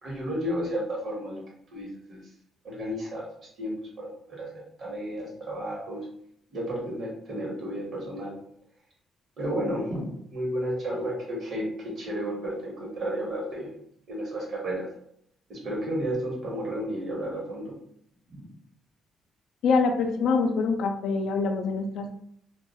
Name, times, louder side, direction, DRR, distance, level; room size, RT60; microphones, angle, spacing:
voice 1, 0.0-1.4 1.7-2.2 2.6-3.3 3.6-6.1 6.5-8.3 9.4-13.7 14.1-14.9 15.5-17.7 18.3-18.4, equal, 60° right, -2 dB, 1.0 m, -32 dB
voice 2, 19.6-22.1, left 4 dB, 80° left, 5 dB, 0.3 m, -25 dB
2.2 x 2.2 x 2.7 m, 0.69 s
cardioid pair, 90°, 0 cm